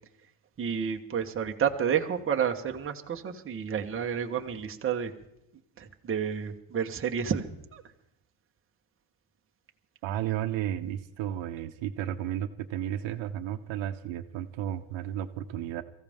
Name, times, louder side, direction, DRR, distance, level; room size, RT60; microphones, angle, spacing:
voice 1, 0.6-5.1 5.8-7.5 7.7-7.8, right 7 dB, 25° right, 3 dB, 1.2 m, -30 dB
voice 2, 10.0-15.8, right 11 dB, 65° right, 8 dB, 1.2 m, -33 dB
23.5 x 15.5 x 3.6 m, 0.84 s
cardioid pair, 125°, 50 cm